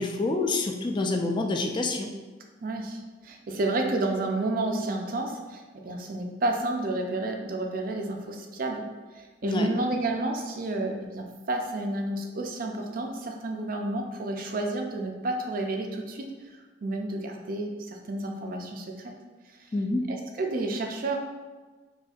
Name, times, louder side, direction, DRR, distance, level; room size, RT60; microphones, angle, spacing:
voice 1, 0.0-2.1 9.4-9.7 19.7-20.0, left 2 dB, 25° left, 3 dB, 0.3 m, -27 dB
voice 2, 2.6-8.9 9.1-16.3 16.8-19.1 19.6-19.7 20.1-21.2, right 2 dB, 55° right, 3 dB, 0.4 m, -30 dB
4.1 x 2.6 x 2.4 m, 1.3 s
head